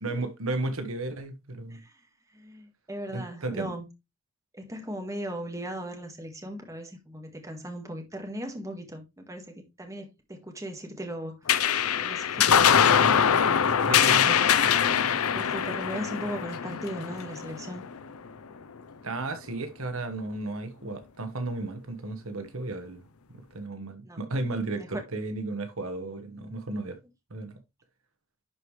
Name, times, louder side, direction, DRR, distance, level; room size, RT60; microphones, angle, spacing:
voice 1, 0.0-1.8 3.1-3.7 13.8-14.4 19.0-23.0 23.3-27.0 27.3-27.5, right 2 dB, 75° right, 1.3 m, -34 dB
voice 2, 2.3-3.9 4.5-11.4 11.9-12.8 15.3-17.8 24.0-24.2 24.7-25.0, equal, 15° right, 1.8 m, -38 dB
sound 1, 11.5-18.3, left 8 dB, 85° left, 0.6 m, -23 dB
11.0 x 4.8 x 3.3 m
head